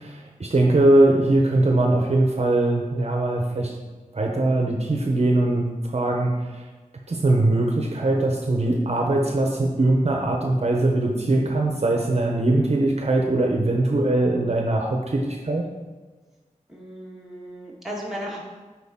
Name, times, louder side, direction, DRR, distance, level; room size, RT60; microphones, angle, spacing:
voice 1, 0.0-3.8 4.1-6.6 7.1-15.7, right 2 dB, 55° right, 1 dB, 0.8 m, -21 dB
voice 2, 16.7-18.4, equal, ahead, -4 dB, 1.7 m, -35 dB
8.2 x 4.7 x 3.6 m, 1.3 s
wide cardioid pair, 75°, 13 cm